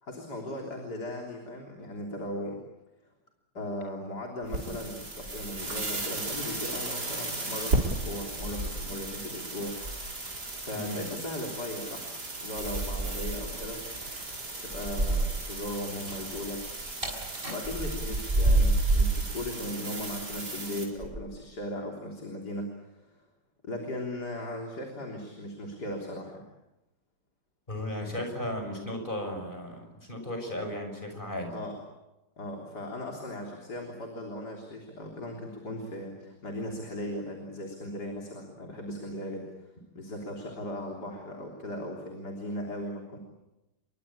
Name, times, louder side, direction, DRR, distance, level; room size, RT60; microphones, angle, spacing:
voice 1, 0.0-2.6 3.5-10.0 10.6-12.1 12.4-13.8 14.6-16.6 17.5-23.2 23.6-26.4 31.5-31.8 32.4-39.5 39.9-43.2, left 1 dB, 70° left, 1 dB, 4.1 m, -37 dB
sound 1, 4.4-20.8, right 2 dB, 70° right, 5.1 m, -36 dB
sound 2, 5.1-6.1 6.3-6.6 7.5-7.6 8.1-9.3 9.6-10.5 12.6-15.5 15.8-19.2 20.0-20.4 21.0-21.2, right 2 dB, 30° right, 6.1 m, -30 dB
voice 2, 10.7-11.1 27.7-31.5, left 1 dB, 30° left, 4 dB, 6.6 m, -35 dB
29.0 x 23.0 x 8.7 m, 0.98 s
omnidirectional pair, 1.8 m